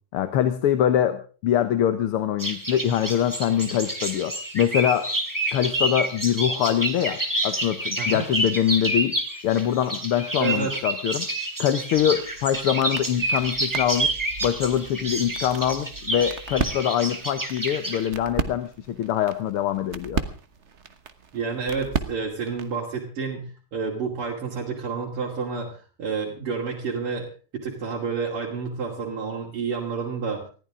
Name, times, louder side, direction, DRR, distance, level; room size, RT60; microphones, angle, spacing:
voice 1, 0.1-5.1 5.5-7.2 7.4-9.2 9.4-11.3 11.6-14.2 14.4-20.2, left 10 dB, 80° left, 10 dB, 1.9 m, -24 dB
sound 1, 2.4-18.1, right 1 dB, 10° right, 2.4 m, -29 dB
voice 2, 10.4-10.8 21.3-25.7 26.0-27.3 27.5-30.4, right 5 dB, 80° right, -4 dB, 3.5 m, -29 dB
sound 2, 11.9-22.8, right 5 dB, 40° right, 1.2 m, -35 dB
20.0 x 15.0 x 3.7 m, 0.38 s
omnidirectional pair, 2.4 m